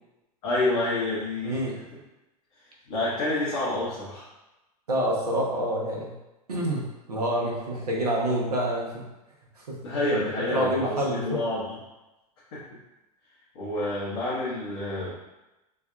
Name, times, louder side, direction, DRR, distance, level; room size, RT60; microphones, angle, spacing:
voice 1, 0.4-1.6 2.9-4.2 9.8-11.8 12.5-12.6 13.5-15.2, left 2 dB, 60° left, -9 dB, 1.0 m, -28 dB
voice 2, 1.4-1.8 4.9-6.1 6.5-9.1 9.6-9.8 10.1-10.2 10.5-11.4, right 1 dB, 85° right, -3 dB, 0.7 m, -27 dB
3.5 x 2.3 x 2.2 m, 1.0 s
hypercardioid pair, 90°, 19 cm